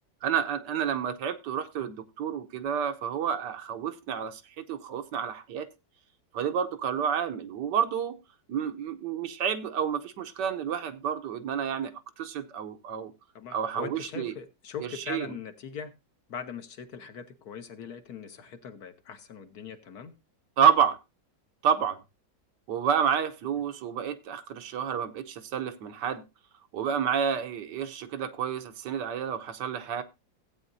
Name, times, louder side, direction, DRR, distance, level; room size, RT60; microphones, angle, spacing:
voice 1, 0.2-5.7 6.3-8.2 8.5-13.1 13.5-14.3 15.1-15.3 20.6-21.0 21.6-22.0 22.7-26.2 26.7-30.0, right 8 dB, 80° right, 8 dB, 1.5 m, -29 dB
voice 2, 13.3-15.9 16.3-20.1, left 6 dB, 65° left, 8 dB, 1.4 m, -41 dB
15.5 x 8.4 x 2.6 m, 0.24 s
omnidirectional pair, 1.9 m